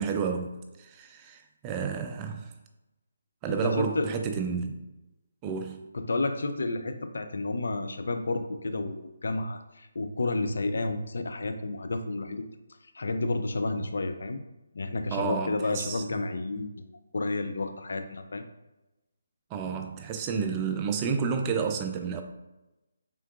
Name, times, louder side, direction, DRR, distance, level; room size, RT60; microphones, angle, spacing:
voice 1, 0.0-2.5 3.4-4.8 5.4-5.8 15.1-16.0 19.5-22.2, right 6 dB, 20° right, 5 dB, 0.4 m, -30 dB
voice 2, 3.6-4.1 5.9-12.4 12.9-14.4 14.7-18.5, left 2 dB, 70° left, 7 dB, 0.4 m, -31 dB
4.4 x 3.7 x 2.3 m, 1.0 s
figure-of-eight pair, 155°, 0 cm